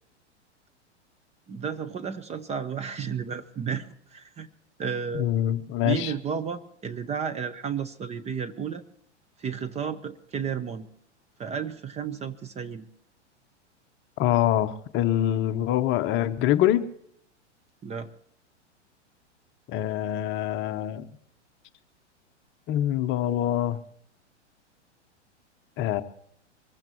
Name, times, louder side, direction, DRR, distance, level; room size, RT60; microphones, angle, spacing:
voice 1, 1.5-4.5 4.8-5.3 5.8-8.8 9.4-10.9 11.4-12.9 17.8-18.1, right 7 dB, 20° right, 10 dB, 0.7 m, -32 dB
voice 2, 5.1-6.1 14.2-16.8 19.7-21.1 22.7-23.8 25.8-26.0, left 12 dB, 30° left, 10 dB, 0.9 m, -25 dB
23.5 x 15.0 x 3.0 m, 0.68 s
hypercardioid pair, 110°, 36 cm